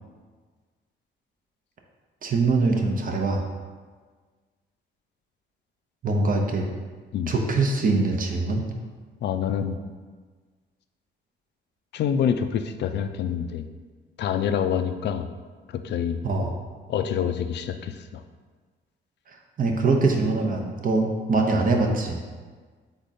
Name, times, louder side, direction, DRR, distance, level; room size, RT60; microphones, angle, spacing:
voice 1, 2.2-3.4 6.0-6.7 7.3-8.6 16.2-16.5 19.6-22.2, right 3 dB, 45° right, 2 dB, 0.7 m, -23 dB
voice 2, 9.2-9.7 11.9-13.7 14.2-15.3 15.7-16.2 16.9-18.2 19.6-19.7 21.6-21.7, left 8 dB, 60° left, 8 dB, 0.4 m, -26 dB
3.6 x 3.5 x 4.1 m, 1.5 s
cardioid pair, 90°, 20 cm